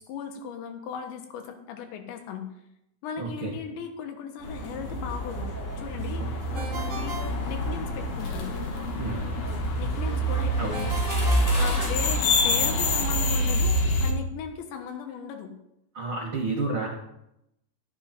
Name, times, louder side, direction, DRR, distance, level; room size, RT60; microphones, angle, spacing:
voice 1, 0.1-2.5 3.0-7.2 7.5-8.6 9.8-11.0 11.6-15.6, left 6 dB, 85° left, 5 dB, 3.6 m, -37 dB
voice 2, 3.2-3.5 9.0-9.3 10.6-10.7 15.9-16.9, right 3 dB, 85° right, -1 dB, 1.1 m, -30 dB
sound 1, 4.4-14.1, left 1 dB, 60° left, 2.5 m, -26 dB
sound 2, 4.4-11.9, equal, 5° left, 3.7 m, -40 dB
Ringtone, 6.5-8.2 10.7-12.4, right 3 dB, 50° right, 2.0 m, -39 dB
12.0 x 11.5 x 4.3 m, 0.82 s
omnidirectional pair, 5.0 m